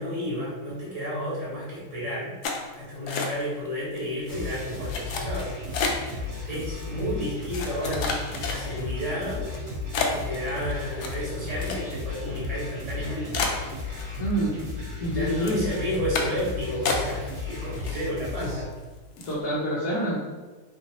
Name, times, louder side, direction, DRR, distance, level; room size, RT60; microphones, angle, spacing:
voice 1, 0.0-2.3 2.7-5.6 5.8-6.2 6.5-9.5 10.0-13.4 15.1-18.7, equal, 25° right, -8 dB, 1.2 m, -32 dB
sound 1, 2.4-3.7 4.0-4.4 4.9-6.2 6.8-6.9 7.5-8.9 9.4-9.6 9.9-12.1 12.4-12.5 12.9-13.0 13.3-14.4 14.7-15.1 15.4-15.6 16.1-16.5 16.9-17.4 17.7-18.4 18.7-18.8 19.2-19.4, left 4 dB, 90° left, 1.2 m, -30 dB
sound 2, 4.3-18.6, left 3 dB, 80° right, 2.2 m, -34 dB
voice 2, 14.2-14.6 15.0-15.7 19.2-20.2, right 1 dB, 70° left, -6 dB, 1.2 m, -26 dB
4.1 x 2.9 x 2.8 m, 1.3 s
omnidirectional pair, 1.6 m